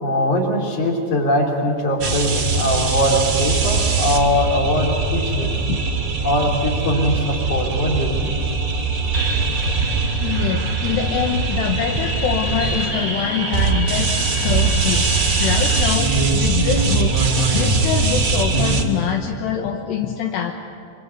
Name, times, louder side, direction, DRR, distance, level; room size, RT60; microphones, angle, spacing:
voice 1, 0.0-5.5 6.2-8.4, left 1 dB, 35° left, 1 dB, 4.2 m, -21 dB
sound 1, 2.0-18.8, right 3 dB, 55° right, 0.9 m, -21 dB
voice 2, 10.2-15.1 15.4-17.1 17.5-20.5, left 9 dB, 75° left, 3 dB, 3.1 m, -24 dB
26.5 x 25.5 x 8.3 m, 2.5 s
omnidirectional pair, 5.2 m